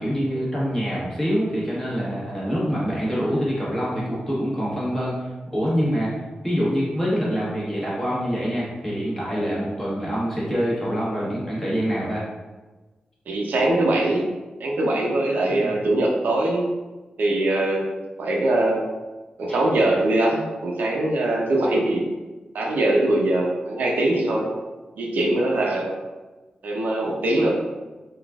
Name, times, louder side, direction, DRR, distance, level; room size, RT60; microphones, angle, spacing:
voice 1, 0.0-6.1 6.4-12.2 15.5-15.8 19.5-19.6, equal, 15° left, -7 dB, 1.2 m, -25 dB
voice 2, 13.3-14.3 14.6-16.7 17.2-17.9 18.2-18.8 19.4-22.0 22.5-24.5 25.0-25.9 26.6-27.5, right 1 dB, 80° right, -1 dB, 0.7 m, -22 dB
3.9 x 2.4 x 3.5 m, 1.2 s
wide cardioid pair, 175°, 3 cm